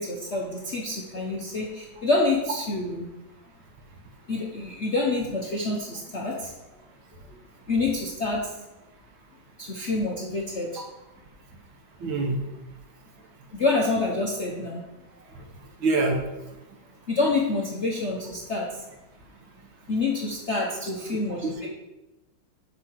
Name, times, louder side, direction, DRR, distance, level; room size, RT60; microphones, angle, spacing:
voice 1, 0.0-3.1 4.3-6.5 7.7-8.4 9.6-10.8 13.5-14.8 17.1-18.7 19.9-21.7, left 3 dB, 50° left, -2 dB, 0.8 m, -27 dB
voice 2, 12.0-12.4 15.4-15.5 15.8-16.2 21.4-21.7, right 3 dB, 65° right, 2 dB, 1.8 m, -25 dB
7.6 x 6.1 x 4.7 m, 1.0 s
omnidirectional pair, 2.4 m